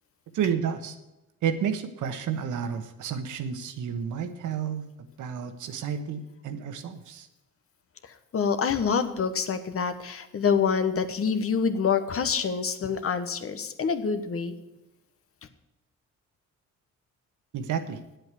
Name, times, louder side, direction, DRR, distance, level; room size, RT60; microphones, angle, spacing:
voice 1, 0.3-1.0 1.4-7.3 17.5-18.0, right 7 dB, 80° right, 8 dB, 1.3 m, -31 dB
voice 2, 8.0-14.5, left 6 dB, 50° left, 9 dB, 1.2 m, -26 dB
9.2 x 7.9 x 8.2 m, 0.97 s
cardioid pair, 90°, 30 cm